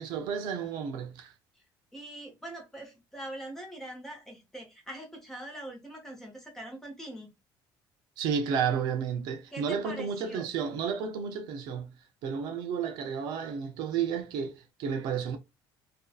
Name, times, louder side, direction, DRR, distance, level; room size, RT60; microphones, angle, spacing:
voice 1, 0.0-1.3 8.2-11.9 12.2-15.4, right 7 dB, 70° right, 0.5 m, -32 dB
voice 2, 1.9-7.3 9.5-10.5, right 1 dB, 5° left, 0.8 m, -43 dB
2.6 x 2.3 x 2.3 m
cardioid pair, 170°, 8 cm